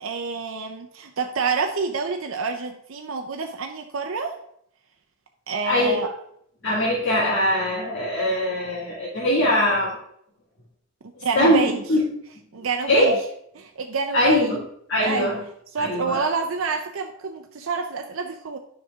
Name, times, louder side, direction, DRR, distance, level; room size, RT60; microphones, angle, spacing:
voice 1, 0.0-4.4 5.5-6.1 11.2-11.8 12.5-13.2 13.5-14.6 15.0-15.3 15.7-18.6, right 4 dB, 65° right, 5 dB, 0.6 m, -27 dB
voice 2, 5.6-6.0 6.6-10.0 11.4-12.0 12.9-13.1 14.1-14.6 14.9-15.4 15.8-16.2, left 1 dB, 60° left, -7 dB, 2.2 m, -21 dB
10.0 x 5.8 x 3.6 m, 0.71 s
head